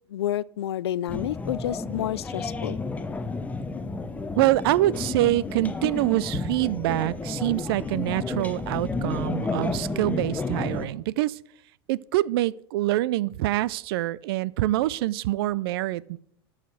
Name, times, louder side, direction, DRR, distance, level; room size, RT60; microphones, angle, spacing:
voice 1, 0.1-2.8, left 12 dB, 90° left, 0.4 m, -29 dB
sound 1, 1.1-10.9, left 3 dB, 10° left, 0.8 m, -31 dB
voice 2, 4.4-11.4 11.9-16.2, right 16 dB, 70° right, 0.4 m, -25 dB
12.5 x 5.0 x 6.2 m
hypercardioid pair, 105°, 13 cm